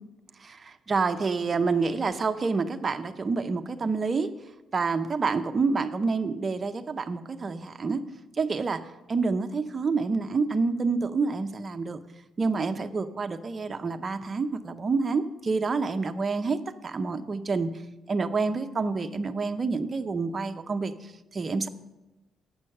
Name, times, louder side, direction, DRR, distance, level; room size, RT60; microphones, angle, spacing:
voice 1, 0.4-4.3 4.7-8.0 8.4-12.0 12.4-16.6 16.8-17.7 18.1-21.7, right 4 dB, 35° right, 8 dB, 0.6 m, -28 dB
8.5 x 6.2 x 6.4 m, 1.0 s
cardioid pair, 90°, 0 cm